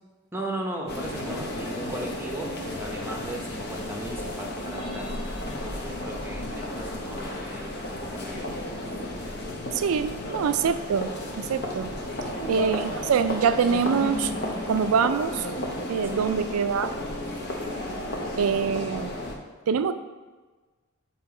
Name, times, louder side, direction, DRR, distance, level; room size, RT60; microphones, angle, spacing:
voice 1, 0.3-8.5 12.2-12.7 16.0-16.4, right 1 dB, 10° right, 1 dB, 0.7 m, -37 dB
sound 1, 0.9-19.3, left 1 dB, 50° left, 0.8 m, -33 dB
voice 2, 9.7-11.9 12.5-14.3 14.7-15.5 15.9-16.9 18.4-19.1 19.7-19.9, right 6 dB, 90° right, 11 dB, 0.4 m, -25 dB
7.4 x 2.8 x 4.9 m, 1.3 s
head